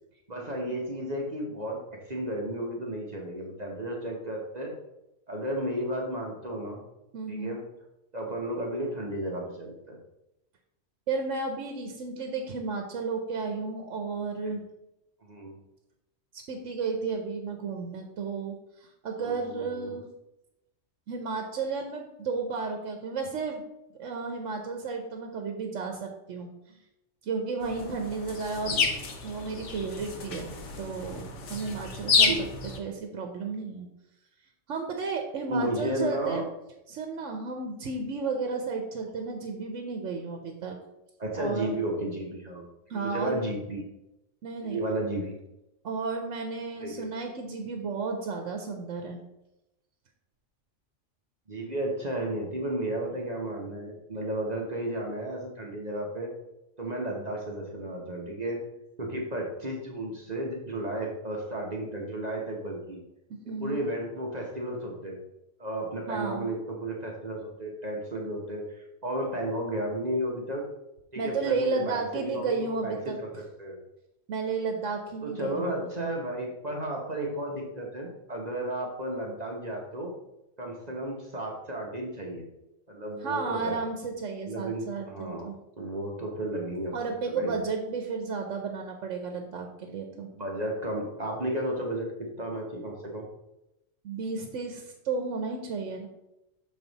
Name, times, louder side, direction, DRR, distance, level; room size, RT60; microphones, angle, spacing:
voice 1, 0.3-4.7 5.3-6.8 7.3-7.6 8.1-10.0 15.2-15.6 19.2-20.0 32.3-32.4 35.5-36.4 41.2-42.7 42.9-43.9 44.6-45.4 46.8-47.1 51.5-56.3 56.8-58.6 59.0-63.0 63.6-65.2 65.6-70.7 71.1-73.3 73.6-73.8 75.2-80.1 80.6-82.5 82.9-83.8 84.5-85.5 85.8-87.6 90.4-93.3, right 1 dB, 35° right, -1 dB, 1.1 m, -33 dB
voice 2, 7.1-7.6 11.1-14.6 16.3-20.1 21.1-23.6 24.0-26.8 27.2-28.8 29.2-32.3 32.8-33.9 34.7-36.4 36.9-40.8 41.4-41.7 42.9-43.4 44.4-44.8 45.8-49.2 63.5-63.8 66.1-66.5 71.2-73.2 74.3-76.1 83.2-85.6 86.9-90.3 94.0-96.1, right 4 dB, 80° right, 4 dB, 1.1 m, -33 dB
sound 1, 27.6-32.8, left 4 dB, 75° left, 1.3 m, -29 dB
6.5 x 5.4 x 4.0 m, 0.90 s
omnidirectional pair, 1.3 m